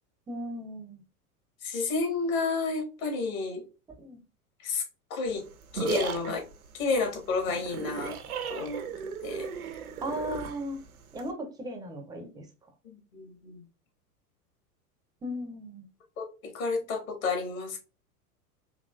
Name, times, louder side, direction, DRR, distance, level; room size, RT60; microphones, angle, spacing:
voice 1, 0.3-1.0 4.0-4.2 10.0-10.8 11.1-12.5 15.2-15.9, equal, 10° right, 5 dB, 0.5 m, -36 dB
voice 2, 1.6-3.6 4.6-4.8 5.1-5.4 5.7-6.4 6.7-8.1 8.5-8.8 9.2-9.5 12.9-13.6 16.2-17.8, left 4 dB, 60° left, 3 dB, 1.6 m, -30 dB
sound 1, 5.3-11.3, right 7 dB, 70° right, 0.7 m, -36 dB
3.9 x 2.9 x 2.3 m, 0.33 s
figure-of-eight pair, 85°, 46 cm